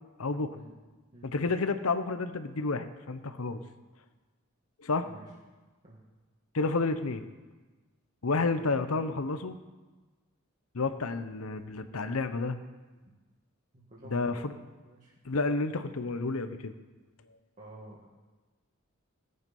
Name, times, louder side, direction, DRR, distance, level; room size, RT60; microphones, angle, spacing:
voice 1, 0.2-0.5 1.2-3.6 4.8-5.1 6.5-7.3 8.2-9.6 10.7-12.6 14.1-14.5 15.2-16.7, left 3 dB, 80° left, 10 dB, 0.9 m, -30 dB
voice 2, 13.7-14.6 14.8-15.1 17.6-18.1, right 1 dB, 35° right, -6 dB, 2.0 m, -51 dB
18.0 x 8.0 x 5.5 m, 1.3 s
head